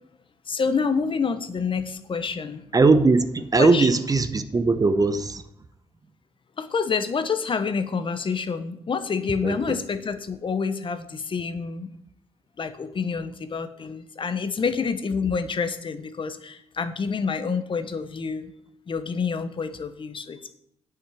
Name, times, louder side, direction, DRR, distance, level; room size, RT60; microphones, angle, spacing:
voice 1, 0.5-2.6 3.6-3.9 6.6-11.9 12.6-18.5 18.9-20.5, left 5 dB, 45° left, 1.0 m, -28 dB
voice 2, 2.7-5.4 9.4-9.6, right 3 dB, 30° right, 0.9 m, -19 dB
8.7 x 5.9 x 6.8 m
supercardioid pair, 65°, 12 cm